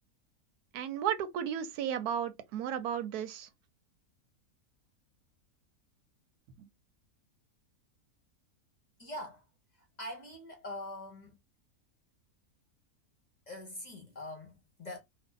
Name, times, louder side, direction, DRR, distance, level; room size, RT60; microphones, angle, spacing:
voice 1, 0.7-3.5 6.6-6.7, right 9 dB, 85° right, 1.1 m, -34 dB
voice 2, 9.0-9.4 10.0-11.4 13.5-15.0, left 1 dB, 35° left, 0.8 m, -43 dB
2.7 x 2.4 x 3.7 m
omnidirectional pair, 1.6 m